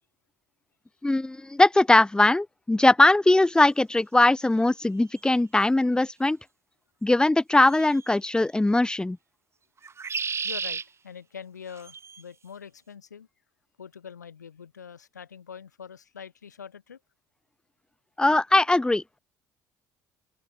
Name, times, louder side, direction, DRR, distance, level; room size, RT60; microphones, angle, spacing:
voice 1, 1.0-6.4 7.0-9.2 18.2-19.2, left 2 dB, 10° left, 0.7 m, -20 dB
sound 1, 5.2-5.3 7.7-8.1 9.8-10.8 11.8-12.2, right 6 dB, 30° right, 0.8 m, -32 dB
voice 2, 10.4-13.3 13.8-17.0, left 7 dB, 85° left, 2.4 m, -44 dB
open air
figure-of-eight pair, 55°, 9 cm